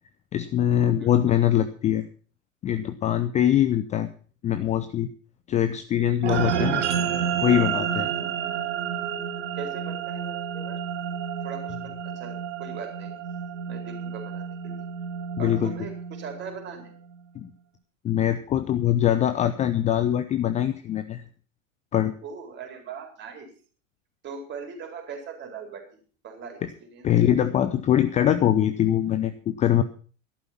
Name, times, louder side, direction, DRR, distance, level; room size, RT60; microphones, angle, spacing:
voice 1, 0.3-2.0 2.6-4.1 4.4-5.1 5.5-6.8 7.4-8.1 15.4-15.7 17.3-17.5 18.0-21.2 21.9-22.1 27.0-29.8, left 11 dB, 20° left, 11 dB, 0.6 m, -23 dB
sound 1, 6.2-16.9, right 8 dB, 60° right, 1.7 m, -30 dB
voice 2, 9.5-10.8 11.4-13.2 13.7-14.9 15.4-16.9 22.2-23.5 24.2-26.6 26.9-27.1, right 5 dB, 25° right, 4 dB, 4.3 m, -40 dB
13.0 x 11.5 x 5.8 m, 0.41 s
figure-of-eight pair, 90°, 40 cm